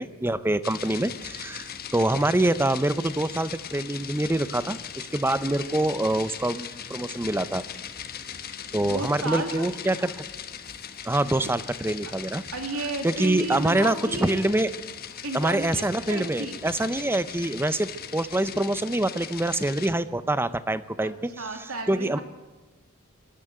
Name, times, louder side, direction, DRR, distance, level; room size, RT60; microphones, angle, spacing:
voice 1, 0.0-7.6 8.7-10.2 11.0-12.4 13.0-14.7 15.3-21.3 21.9-22.2, right 1 dB, 10° right, 15 dB, 0.6 m, -25 dB
sound 1, 0.6-19.9, left 8 dB, 45° left, 1.3 m, -39 dB
voice 2, 8.8-9.7 12.0-12.1 12.5-14.4 15.2-16.6 21.0-22.2, right 2 dB, 80° right, 5 dB, 2.7 m, -33 dB
23.5 x 12.5 x 9.2 m, 1.2 s
head